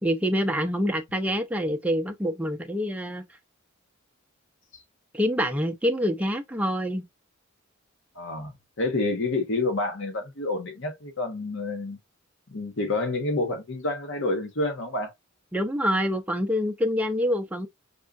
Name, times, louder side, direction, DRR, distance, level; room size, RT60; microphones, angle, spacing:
voice 1, 0.0-3.2 5.1-7.0 15.5-17.7, equal, 5° right, 0.5 m, -26 dB
voice 2, 8.2-8.5 8.8-12.0 12.5-15.1, left 2 dB, 60° left, 1.1 m, -28 dB
5.4 x 2.4 x 2.4 m
head